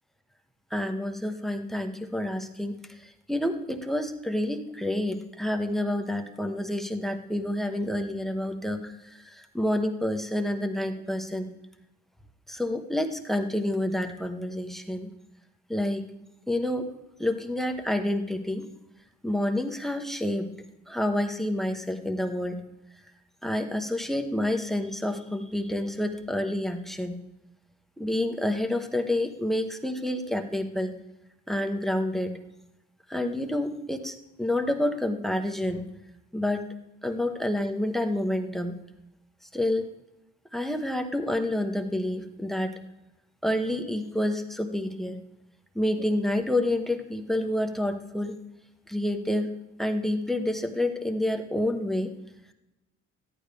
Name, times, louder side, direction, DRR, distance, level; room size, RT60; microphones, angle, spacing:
voice 1, 0.7-2.8 3.0-8.9 9.2-11.5 12.5-15.1 15.7-16.0 16.5-16.9 17.2-18.7 19.2-20.5 20.9-22.6 23.4-27.2 28.0-31.0 31.5-32.4 33.1-35.8 36.3-36.7 37.0-38.8 39.5-39.9 40.5-42.8 43.4-45.2 45.7-48.3 48.9-49.5 49.8-52.1, left 1 dB, ahead, 6 dB, 1.1 m, -28 dB
13.5 x 11.5 x 3.5 m, 0.94 s
cardioid pair, 90°, 30 cm